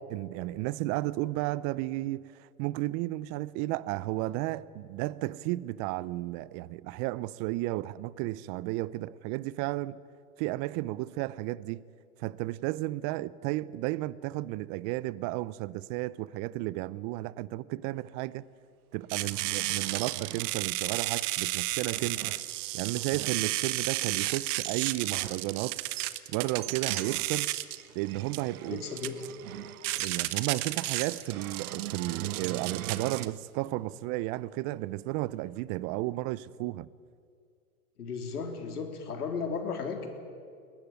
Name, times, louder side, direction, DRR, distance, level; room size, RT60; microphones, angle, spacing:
voice 1, 0.1-2.3 2.6-10.0 10.4-11.8 12.2-18.4 18.9-22.3 22.7-25.9 26.3-27.5 27.9-28.8 30.0-36.9, right 18 dB, 40° right, 0.7 m, -33 dB
sound 1, 18.1-18.2 19.0-20.7 21.7-22.5 22.9-23.4 25.0-25.5 26.4-27.3 27.9-30.1 31.3-33.4 33.9-34.0 35.6-35.7, right 13 dB, 75° right, 0.7 m, -42 dB
sound 2, 19.1-33.3, right 16 dB, 55° right, 1.2 m, -33 dB
voice 2, 28.6-29.2 38.0-40.1, left 5 dB, 85° left, 3.6 m, -35 dB
21.5 x 19.5 x 9.4 m
hypercardioid pair, 110°, 44 cm